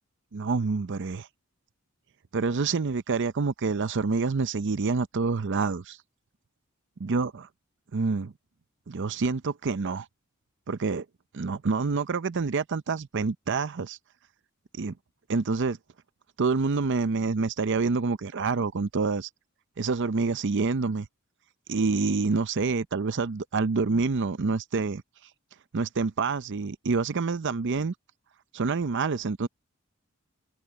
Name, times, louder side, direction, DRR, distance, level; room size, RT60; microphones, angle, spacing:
voice 1, 0.3-1.3 2.3-6.0 7.0-7.5 7.9-8.3 8.9-10.1 10.7-11.0 11.3-14.0 14.8-14.9 15.3-15.8 16.4-19.3 19.8-21.1 21.7-25.0 25.7-27.9 28.5-29.5, right 4 dB, 55° right, 0.6 m, -27 dB
head